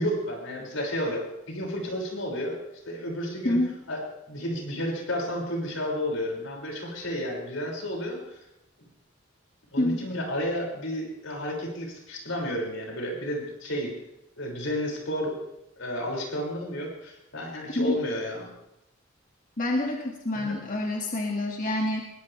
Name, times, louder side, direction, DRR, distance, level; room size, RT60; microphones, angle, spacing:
voice 1, 0.0-2.6 2.8-3.6 3.9-4.0 4.3-8.4 9.7-13.9 14.4-15.3 15.8-18.5 20.3-20.5, equal, 90° left, -2 dB, 6.3 m, -31 dB
voice 2, 19.6-22.1, left 1 dB, 45° left, 0 dB, 2.2 m, -27 dB
22.5 x 18.5 x 3.5 m, 0.86 s
head